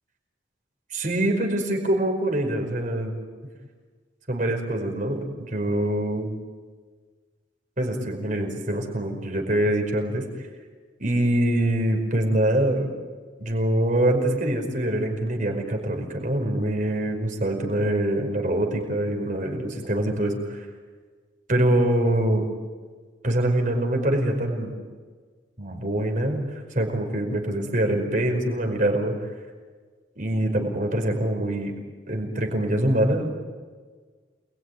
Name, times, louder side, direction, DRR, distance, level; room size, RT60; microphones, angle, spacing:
voice 1, 0.9-3.1 4.3-6.4 7.8-10.2 11.0-12.9 13.4-20.7 21.5-22.4 23.2-24.8 25.6-26.4 26.7-29.1 30.2-31.7 32.1-33.3, right 1 dB, 40° right, 3 dB, 5.2 m, -24 dB
28.5 x 22.0 x 9.6 m, 1.5 s
head